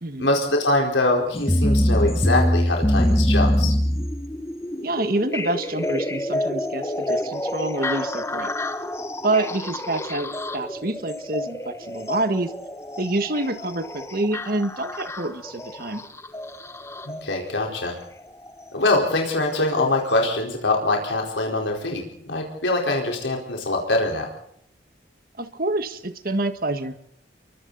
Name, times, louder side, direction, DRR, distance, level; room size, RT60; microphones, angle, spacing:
voice 1, 0.2-3.7 17.1-17.9 18.7-24.3, left 2 dB, 90° left, 1 dB, 4.5 m, -23 dB
sound 1, 1.3-17.2 18.5-18.6 19.3-19.4 20.1-20.2, equal, 15° left, 1.2 m, -25 dB
voice 2, 4.8-8.5 9.2-12.5 13.0-16.0 25.4-26.9, right 2 dB, 50° right, 9 dB, 1.7 m, -27 dB
29.5 x 23.5 x 4.2 m, 0.68 s
head